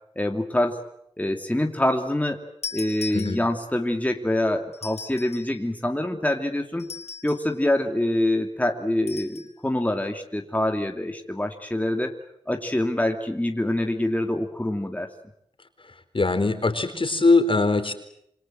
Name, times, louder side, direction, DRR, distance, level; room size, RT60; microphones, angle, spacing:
voice 1, 0.2-0.8 1.2-2.4 2.7-6.9 7.2-12.2 12.5-15.1, left 1 dB, 15° left, 4 dB, 2.8 m, -25 dB
sound 1, 2.6-3.8 4.7-5.6 6.8-7.6 9.1-9.5, left 5 dB, 70° left, 4.9 m, -38 dB
voice 2, 16.1-17.9, left 3 dB, 50° left, 9 dB, 4.1 m, -21 dB
27.5 x 25.5 x 7.7 m, 0.73 s
wide cardioid pair, 70°, 12 cm